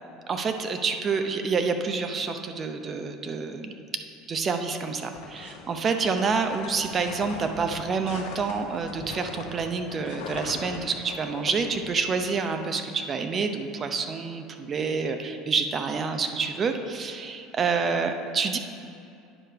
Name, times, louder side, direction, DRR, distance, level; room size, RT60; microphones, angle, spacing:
voice 1, 0.3-3.7 4.3-18.6, right 5 dB, 35° right, 6 dB, 0.6 m, -28 dB
sound 1, 5.1-12.7, left 4 dB, 80° left, 1.0 m, -41 dB
9.8 x 3.3 x 5.7 m, 2.5 s
hypercardioid pair, 75°, 0 cm